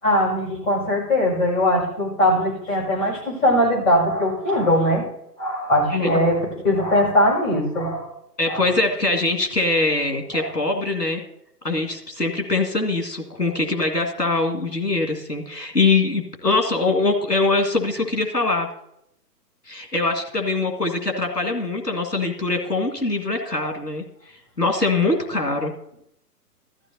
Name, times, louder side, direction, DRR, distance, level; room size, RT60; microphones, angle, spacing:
voice 1, 0.0-5.0 5.4-8.1 8.5-8.6 10.3-10.5 23.6-23.7, left 1 dB, 30° left, -4 dB, 6.1 m, -21 dB
voice 2, 8.4-11.2 11.6-18.7 19.7-25.7, left 3 dB, 90° left, 2 dB, 2.0 m, -23 dB
15.5 x 13.5 x 2.8 m, 0.79 s
figure-of-eight pair, 130°, 48 cm